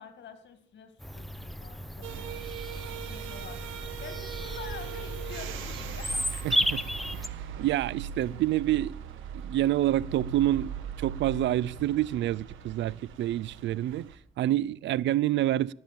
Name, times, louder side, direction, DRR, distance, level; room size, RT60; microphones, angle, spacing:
voice 1, 0.0-6.3, left 7 dB, 65° left, 2.1 m, -47 dB
Bird vocalization bird call bird song, 1.0-7.3, equal, ahead, 0.6 m, -34 dB
sound 1, 2.0-14.2, right 7 dB, 90° right, 1.3 m, -39 dB
voice 2, 6.4-6.8 7.6-8.9 9.3-10.7 11.0-14.1 14.4-15.7, right 13 dB, 70° right, 0.4 m, -27 dB
18.5 x 7.1 x 7.5 m
cardioid pair, 90°, 20 cm